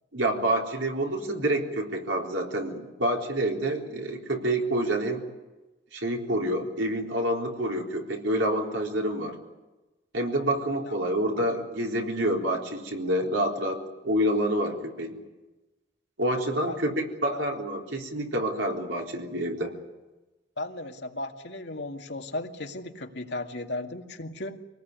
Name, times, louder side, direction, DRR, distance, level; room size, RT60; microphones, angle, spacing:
voice 1, 0.1-5.2 5.9-9.4 10.1-15.2 16.2-19.7, right 1 dB, 85° right, 1 dB, 3.9 m, -28 dB
voice 2, 20.6-24.6, left 2 dB, 70° left, 3 dB, 2.1 m, -36 dB
25.0 x 19.0 x 9.6 m, 1.1 s
head